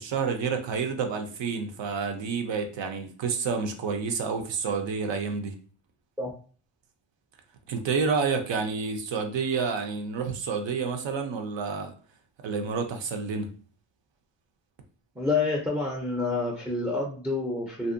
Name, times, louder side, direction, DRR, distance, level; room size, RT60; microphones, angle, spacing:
voice 1, 0.0-5.5 7.7-11.9 12.4-13.5, right 5 dB, 65° right, 5 dB, 0.6 m, -29 dB
voice 2, 15.2-17.9, left 3 dB, 5° right, -2 dB, 0.4 m, -28 dB
2.6 x 2.1 x 2.5 m, 0.41 s
cardioid pair, 80°, 48 cm